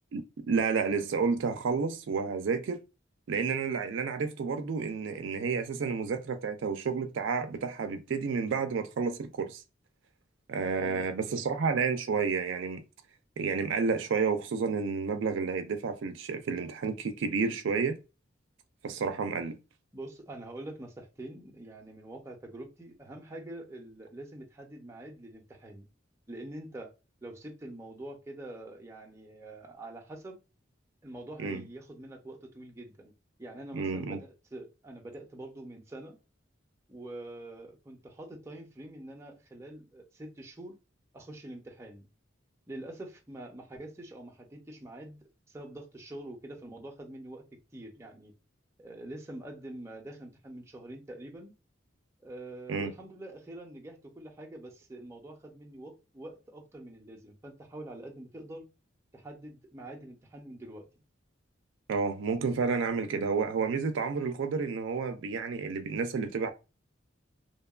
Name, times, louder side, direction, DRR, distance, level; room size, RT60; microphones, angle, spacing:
voice 1, 0.1-2.8 3.3-9.6 10.5-12.8 13.4-17.9 18.8-19.6 31.4-31.6 33.7-34.2 52.7-52.9 61.9-66.5, right 5 dB, 70° right, 0.4 m, -30 dB
voice 2, 10.8-11.4 19.9-25.9 26.3-26.9 27.2-30.4 31.0-33.1 33.4-36.2 36.9-40.8 41.1-42.1 42.7-45.2 45.5-47.4 47.7-48.3 48.8-51.5 52.2-58.7 59.1-60.9, right 1 dB, 15° right, 0.5 m, -45 dB
2.7 x 2.2 x 2.3 m
head